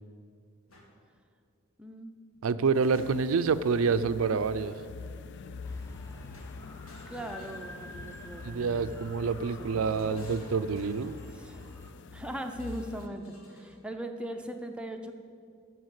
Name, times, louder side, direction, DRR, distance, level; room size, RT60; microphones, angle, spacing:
sound 1, 0.7-0.9 2.3-3.5 4.6-5.0 6.3-8.2 9.5-11.3 12.5-13.8, left 1 dB, 80° left, 1.7 m, -56 dB
voice 1, 1.8-2.1 7.1-9.1 9.7-10.3 11.4-11.6 12.1-15.1, right 1 dB, 5° right, 4 dB, 0.7 m, -40 dB
voice 2, 2.4-4.8 8.4-11.1, right 5 dB, 80° right, 13 dB, 0.4 m, -27 dB
sound 2, 2.7-13.1, left 4 dB, 55° left, 0.4 m, -45 dB
sound 3, 5.6-11.9, equal, 15° left, 0.9 m, -49 dB
12.5 x 4.6 x 8.1 m, 2.2 s
head